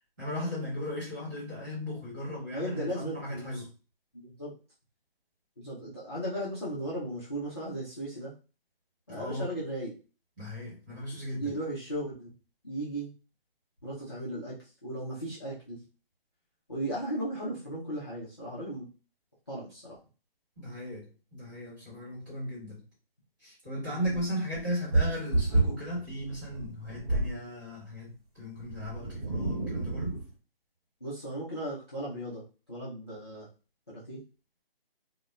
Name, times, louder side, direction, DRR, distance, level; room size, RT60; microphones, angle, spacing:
voice 1, 0.2-3.7 9.1-9.4 10.4-11.6 20.6-22.8 23.4-30.2, equal, 20° right, -8 dB, 1.2 m, -37 dB
voice 2, 2.5-3.6 4.1-4.5 5.6-8.3 9.1-9.9 11.4-12.3 12.6-13.1 13.8-15.8 16.7-18.9 19.5-20.0 23.8-24.1 31.0-32.4 32.7-33.5 33.9-34.2, right 1 dB, 25° left, -8 dB, 0.5 m, -36 dB
sound 1, 24.0-27.4 28.6-30.3, right 2 dB, 40° right, 0.8 m, -30 dB
2.7 x 2.1 x 2.3 m, 0.34 s
figure-of-eight pair, 160°, 30 cm